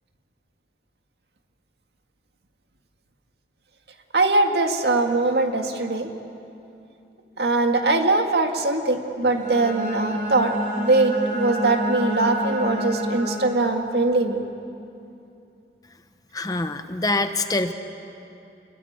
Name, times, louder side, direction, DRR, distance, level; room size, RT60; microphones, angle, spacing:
voice 1, 4.1-6.1 7.4-14.5, right 2 dB, 70° right, 4 dB, 2.0 m, -21 dB
Bowed string instrument, 9.2-13.7, equal, 50° right, 5.8 m, -28 dB
voice 2, 16.3-17.7, left 2 dB, 20° left, 8 dB, 0.9 m, -25 dB
27.5 x 22.0 x 8.8 m, 2.7 s
head